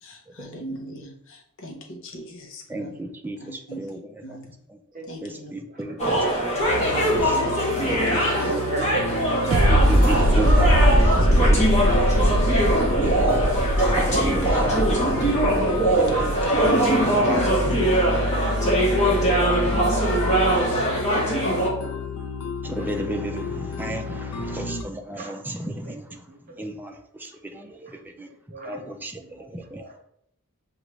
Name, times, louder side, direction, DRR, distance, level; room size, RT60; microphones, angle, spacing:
voice 1, 0.0-3.0 3.4-3.9 4.2-4.6 5.1-5.5 6.5-7.2 7.9-8.6 10.0-10.4 11.0-11.5 13.0-13.2 18.2-18.4, equal, 65° left, 0.8 m, -41 dB
voice 2, 2.7-4.2 4.7-4.8 5.2-6.2 6.7-7.5 7.8-8.6 9.7-10.8 11.0-12.0 13.0-13.4 14.0-15.4 15.7-16.4 17.1-17.5 22.6-26.0 26.6-28.3 28.7-29.2 29.5-29.8, right 1 dB, 10° right, 0.4 m, -34 dB
sound 1, 6.0-21.7, right 1 dB, 30° left, 1.3 m, -22 dB
sound 2, 6.7-24.8, left 2 dB, 85° left, 0.4 m, -29 dB
voice 3, 8.0-9.0 9.3-9.4 11.4-12.0 12.7-13.0 21.4-21.9 25.2-25.3 25.9-26.0 26.3-26.4 28.5-28.8 29.3-29.5 29.8-30.0, right 2 dB, 40° right, 0.9 m, -35 dB
sound 3, 9.5-17.0, right 1 dB, 70° right, 0.6 m, -21 dB
6.4 x 2.4 x 3.0 m
head